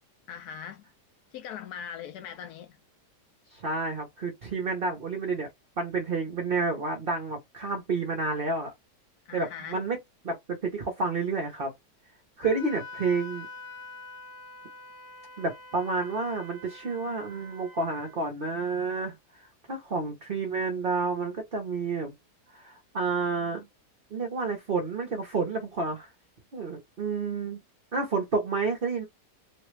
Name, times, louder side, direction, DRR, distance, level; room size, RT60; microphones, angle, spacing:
voice 1, 0.3-0.8 1.3-2.8 9.3-9.8, left 8 dB, 70° left, 1.2 m, -40 dB
voice 2, 3.5-5.5 5.8-8.7 9.3-10.0 10.2-11.7 12.4-13.5 15.4-19.1 19.7-22.1 22.5-23.7 24.1-26.1 26.5-27.6 27.9-29.1, right 4 dB, 45° right, 0.8 m, -30 dB
Wind instrument woodwind instrument, 12.4-18.2, left 3 dB, 55° left, 0.7 m, -45 dB
3.3 x 2.2 x 3.1 m
omnidirectional pair, 1.8 m